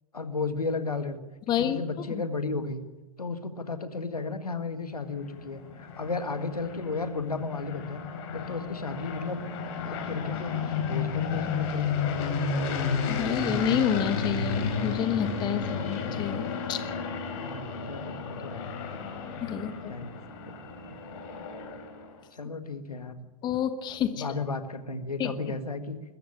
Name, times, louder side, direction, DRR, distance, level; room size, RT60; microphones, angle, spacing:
voice 1, 0.1-1.2 1.5-2.8 3.2-8.0 8.3-9.5 9.8-12.3 17.4-18.7 19.6-20.5 22.3-23.2 24.1-26.0, left 3 dB, 80° left, 9 dB, 1.8 m, -34 dB
voice 2, 1.5-1.8 2.1-2.2 13.1-16.8 19.4-19.9 23.4-24.2 25.2-25.3, left 9 dB, 25° left, 11 dB, 1.2 m, -29 dB
sound 1, 5.0-22.1, left 5 dB, 45° left, 4.3 m, -32 dB
22.0 x 14.0 x 8.9 m, 1.1 s
figure-of-eight pair, 105°, 19 cm